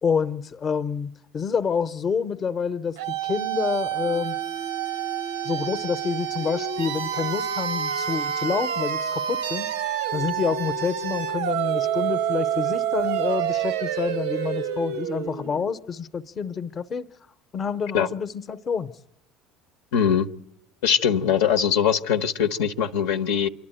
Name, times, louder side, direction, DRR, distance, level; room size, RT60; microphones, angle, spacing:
voice 1, 0.0-4.4 5.4-9.7 10.1-17.1 17.5-19.0, left 6 dB, 35° left, 0.8 m, -28 dB
sound 1, 3.0-15.8, right 9 dB, 90° right, 0.6 m, -28 dB
voice 2, 19.9-20.3 20.8-23.5, left 8 dB, 80° left, 0.9 m, -22 dB
26.5 x 11.5 x 9.0 m
supercardioid pair, 90°, 0 cm